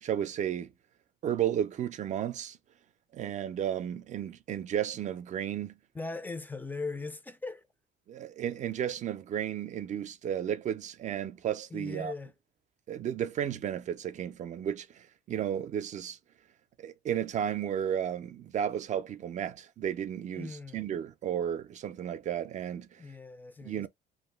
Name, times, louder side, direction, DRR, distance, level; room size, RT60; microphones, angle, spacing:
voice 1, 0.0-0.7 1.2-2.6 3.1-5.8 8.1-12.1 12.9-16.2 16.8-22.9 23.6-23.9, right 9 dB, 45° right, 0.5 m, -33 dB
voice 2, 5.9-7.6 11.7-12.3 20.4-20.8 23.0-23.9, left 3 dB, 10° left, 0.4 m, -39 dB
2.6 x 2.1 x 3.3 m
cardioid pair, 110°, 17 cm